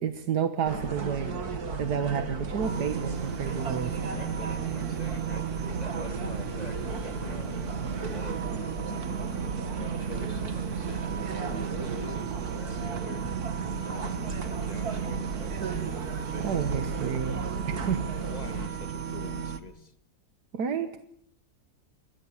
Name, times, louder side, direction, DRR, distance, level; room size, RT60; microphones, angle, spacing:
voice 1, 0.0-1.3 1.8-4.2 16.4-18.0 20.5-21.0, right 7 dB, 85° right, 9 dB, 1.9 m, -30 dB
sound 1, 0.6-18.7, right 4 dB, 70° right, 2.6 m, -35 dB
sound 2, 2.6-19.6, right 7 dB, 50° right, 1.6 m, -35 dB
voice 2, 4.1-7.6 8.1-9.2 9.7-13.3 13.9-14.3 14.6-15.8 17.8-17.9 18.3-19.9, left 2 dB, 25° left, 10 dB, 1.7 m, -44 dB
28.5 x 21.5 x 7.2 m, 0.68 s
omnidirectional pair, 1.7 m